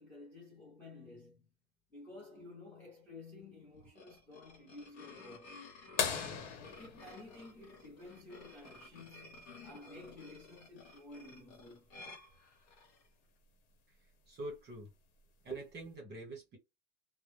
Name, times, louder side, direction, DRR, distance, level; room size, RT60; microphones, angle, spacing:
voice 1, 0.0-1.5 1.9-5.6 6.8-11.9, left 2 dB, 5° left, 0.7 m, -53 dB
sound 1, 3.7-13.1, left 3 dB, 60° left, 1.0 m, -54 dB
sound 2, 6.0-8.4 10.4-10.5 12.7-12.8 14.5-14.8 15.6-15.7, left 7 dB, 85° left, 0.9 m, -38 dB
voice 2, 14.3-14.9 15.4-16.6, right 2 dB, 25° right, 1.2 m, -44 dB
2.2 x 2.0 x 3.0 m
supercardioid pair, 155°, 42 cm